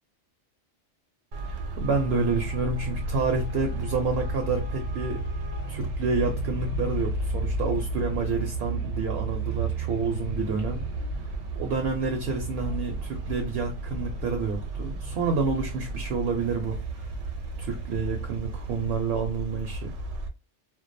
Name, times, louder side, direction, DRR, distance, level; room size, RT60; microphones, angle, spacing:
Traffic noise roadway noise, 1.3-20.3, right 2 dB, 90° right, 0.9 m, -32 dB
voice 1, 1.5-5.2 5.7-10.8 11.6-17.1 17.6-19.9, right 4 dB, 65° right, 0.7 m, -29 dB
2.3 x 2.2 x 2.5 m
omnidirectional pair, 1.2 m